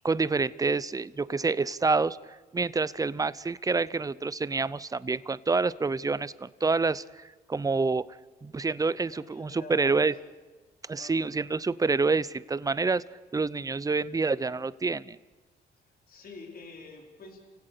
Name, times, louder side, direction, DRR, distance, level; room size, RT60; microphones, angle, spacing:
voice 1, 0.0-2.2 2.5-7.2 7.5-8.0 8.4-10.1 10.9-13.0 13.3-15.2, right 4 dB, 20° right, 18 dB, 0.6 m, -27 dB
voice 2, 9.1-10.0 10.9-11.3 16.1-17.5, left 3 dB, 50° left, 0 dB, 4.8 m, -47 dB
29.5 x 16.5 x 6.8 m, 1.3 s
cardioid pair, 90°, 20 cm